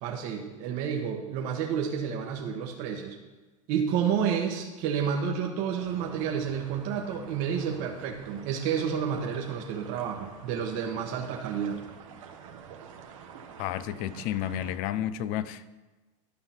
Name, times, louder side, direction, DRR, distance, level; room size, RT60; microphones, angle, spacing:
voice 1, 0.0-3.2 3.7-11.9, right 7 dB, 60° right, 1 dB, 1.2 m, -30 dB
sound 1, 5.8-14.8, right 7 dB, 80° right, 1.2 m, -48 dB
voice 2, 13.6-15.7, left 11 dB, 55° left, 15 dB, 0.6 m, -31 dB
12.0 x 5.5 x 5.8 m, 1.2 s
supercardioid pair, 105°, 17 cm